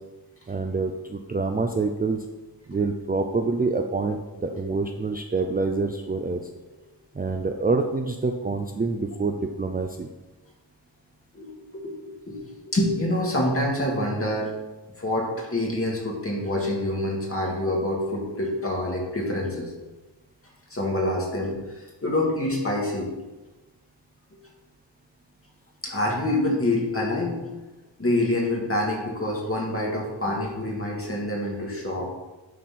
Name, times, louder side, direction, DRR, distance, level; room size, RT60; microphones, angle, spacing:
voice 1, 0.5-2.2 2.7-6.5 7.1-10.1, right 3 dB, 20° right, 4 dB, 0.4 m, -26 dB
voice 2, 11.3-11.9 12.3-12.4 12.6-14.5 15.0-19.7 20.7-23.1 25.8-27.4 28.0-32.1, left 1 dB, 30° left, -2 dB, 2.1 m, -26 dB
9.3 x 4.3 x 5.9 m, 1.1 s
wide cardioid pair, 140°, 45 cm